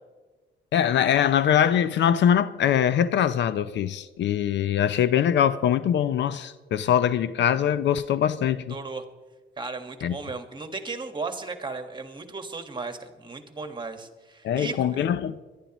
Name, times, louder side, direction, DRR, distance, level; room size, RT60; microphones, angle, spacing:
voice 1, 0.7-8.8 10.0-10.1 14.4-15.4, left 9 dB, 65° left, 0.5 m, -22 dB
voice 2, 8.7-9.0 9.6-15.1, right 4 dB, 25° right, 1.6 m, -35 dB
23.5 x 11.5 x 3.0 m
cardioid pair, 90°, 20 cm